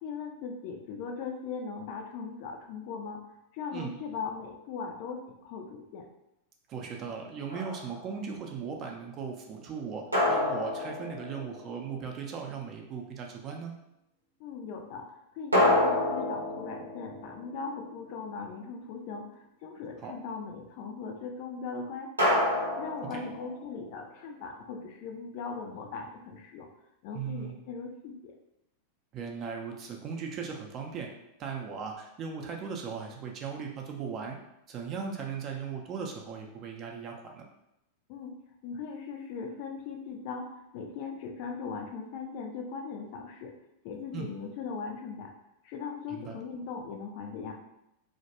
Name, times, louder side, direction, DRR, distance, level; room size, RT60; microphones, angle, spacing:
voice 1, 0.0-3.2 3.5-6.1 14.4-22.4 22.7-26.7 27.0-28.3 38.1-38.4 38.6-43.5 43.8-45.3 45.6-47.5, left 5 dB, 45° left, 3 dB, 0.3 m, -39 dB
voice 2, 6.7-10.0 10.3-13.7 20.0-20.1 23.0-23.3 27.1-27.7 29.1-31.1 31.4-34.4 34.7-37.4 44.1-44.3 46.1-46.4, right 6 dB, 35° right, 1 dB, 0.4 m, -38 dB
sound 1, 7.5-8.1 10.1-11.9 15.5-18.1 22.2-23.8, left 1 dB, 80° right, 0.6 m, -28 dB
2.2 x 2.1 x 2.9 m, 0.83 s
figure-of-eight pair, 90°, 0 cm